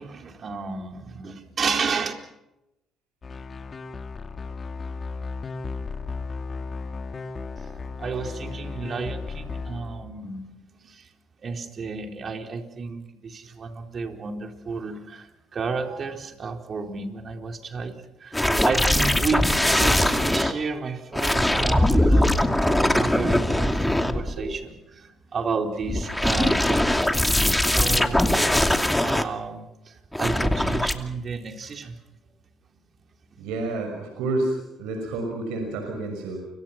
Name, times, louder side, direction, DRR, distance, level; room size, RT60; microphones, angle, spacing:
voice 1, 0.0-2.1 8.0-10.5 10.8-11.1 11.4-17.9 18.2-28.6 29.0-32.0, right 4 dB, 45° right, 4 dB, 4.2 m, -31 dB
sound 1, 3.2-10.2, left 4 dB, 40° left, 2.5 m, -35 dB
sound 2, 18.3-20.5 21.1-24.6 25.8-29.2 30.1-30.9, left 1 dB, 5° left, 2.6 m, -21 dB
voice 2, 33.4-36.4, right 2 dB, 90° right, 3 dB, 6.0 m, -29 dB
29.5 x 24.5 x 6.0 m, 0.90 s
supercardioid pair, 75°, 0 cm